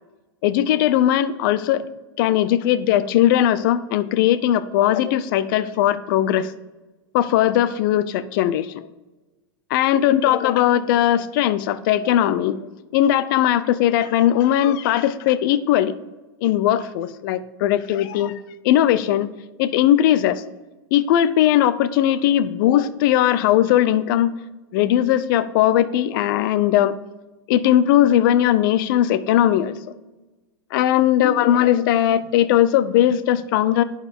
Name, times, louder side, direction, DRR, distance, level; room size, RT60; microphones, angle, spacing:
voice 1, 0.4-6.5 7.1-8.8 9.7-12.6 12.9-16.0 16.4-18.4 18.6-19.3 19.6-20.4 20.9-24.3 24.7-27.0 27.5-29.7 30.7-33.8, left 11 dB, 60° left, 15 dB, 0.5 m, -19 dB
11.0 x 4.7 x 3.6 m, 1.1 s
hypercardioid pair, 125°, 13 cm